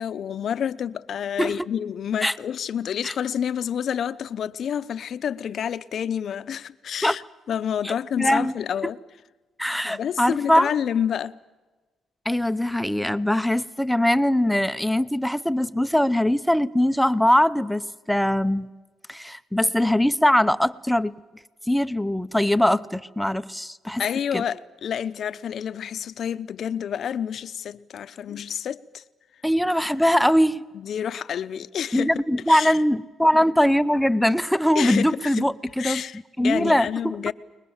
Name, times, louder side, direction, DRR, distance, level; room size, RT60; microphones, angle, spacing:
voice 1, 0.0-7.2 7.5-9.0 9.8-11.4 24.0-29.0 30.7-32.1 32.5-32.8 34.7-35.5 35.8-37.3, left 8 dB, 60° left, 0.8 m, -29 dB
voice 2, 7.8-8.5 9.6-10.7 12.2-18.7 19.1-21.1 21.7-24.0 24.3-24.4 29.4-30.6 31.9-35.5 35.8-36.0 36.4-36.9, left 1 dB, 5° left, 0.9 m, -21 dB
29.5 x 21.0 x 7.3 m
cardioid pair, 90°, 0 cm